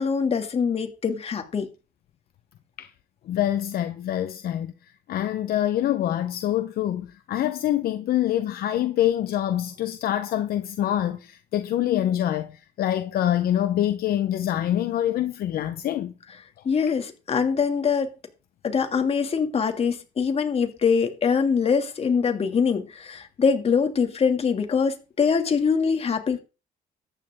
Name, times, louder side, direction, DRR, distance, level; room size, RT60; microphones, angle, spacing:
voice 1, 0.0-1.7 16.6-18.1 18.6-26.4, left 6 dB, 35° left, 2.6 m, -23 dB
voice 2, 3.3-4.7 5.1-16.1, left 12 dB, 65° left, 1.0 m, -25 dB
14.0 x 9.9 x 3.8 m
cardioid pair, 110°, 17 cm